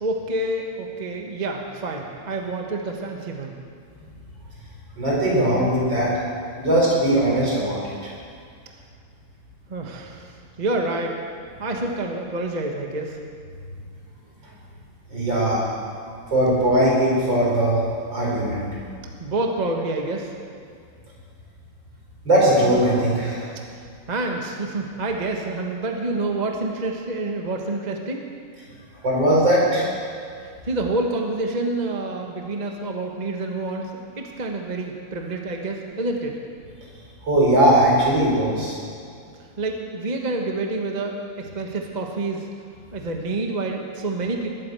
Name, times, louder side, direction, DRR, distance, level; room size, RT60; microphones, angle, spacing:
voice 1, 0.0-3.6 9.7-11.2 11.6-13.2 19.2-20.3 24.1-28.3 30.4-36.4 39.6-42.5 42.9-44.5, right 2 dB, 25° right, 1 dB, 1.2 m, -28 dB
voice 2, 5.0-6.1 6.6-7.8 15.1-15.6 16.3-17.8 18.1-18.6 22.3-23.5 29.0-29.8 37.2-38.8, right 1 dB, 70° right, -5 dB, 5.7 m, -19 dB
21.0 x 8.7 x 8.0 m, 2.3 s
omnidirectional pair, 2.1 m